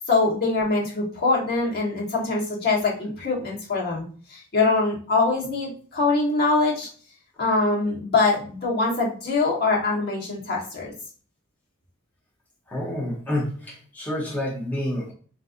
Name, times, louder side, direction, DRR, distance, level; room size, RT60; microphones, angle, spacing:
voice 1, 0.0-4.0 4.3-6.9 7.4-10.9, left 3 dB, 50° left, -4 dB, 1.2 m, -23 dB
voice 2, 12.7-15.1, left 1 dB, 10° left, -5 dB, 0.8 m, -28 dB
3.9 x 2.5 x 2.5 m, 0.41 s
head